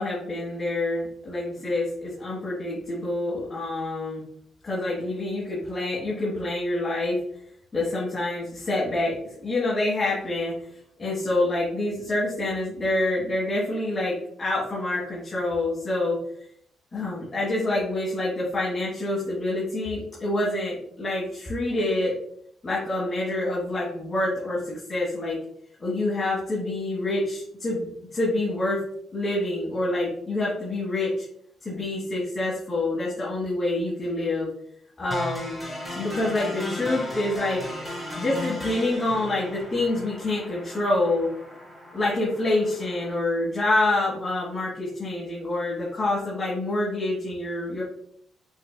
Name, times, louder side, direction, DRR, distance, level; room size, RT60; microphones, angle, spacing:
voice 1, 0.0-4.2 4.6-7.2 7.7-10.5 11.0-16.2 16.9-22.1 22.6-25.4 25.8-28.8 29.1-31.3 31.6-34.5 35.0-35.6 36.0-37.6 38.2-41.3 41.9-47.8, left 2 dB, 30° left, -8 dB, 1.6 m, -27 dB
sound 1, 35.1-43.1, left 1 dB, 5° left, 1.5 m, -36 dB
6.0 x 2.6 x 2.2 m, 0.67 s
cardioid pair, 90°, 0 cm